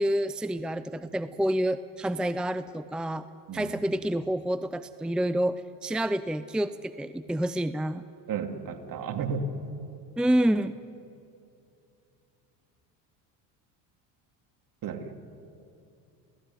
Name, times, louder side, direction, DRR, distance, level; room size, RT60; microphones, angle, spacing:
voice 1, 0.0-3.2 3.5-8.0 10.2-10.8, right 1 dB, ahead, 13 dB, 0.6 m, -28 dB
voice 2, 8.3-9.5 14.8-15.1, right 5 dB, 50° right, 5 dB, 3.0 m, -33 dB
28.5 x 17.0 x 9.8 m, 2.6 s
supercardioid pair, 95°, 42 cm